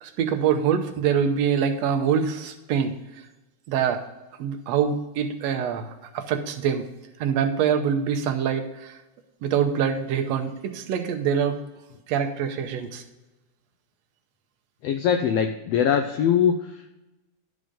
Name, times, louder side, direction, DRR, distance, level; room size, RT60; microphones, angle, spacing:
voice 1, 0.0-2.9 3.7-4.0 4.4-6.9 7.2-8.9 9.4-11.6 12.1-13.0, right 7 dB, 70° right, 6 dB, 1.8 m, -24 dB
voice 2, 14.8-16.9, left 8 dB, 85° left, 7 dB, 1.4 m, -22 dB
11.5 x 5.0 x 5.2 m, 1.1 s
omnidirectional pair, 3.4 m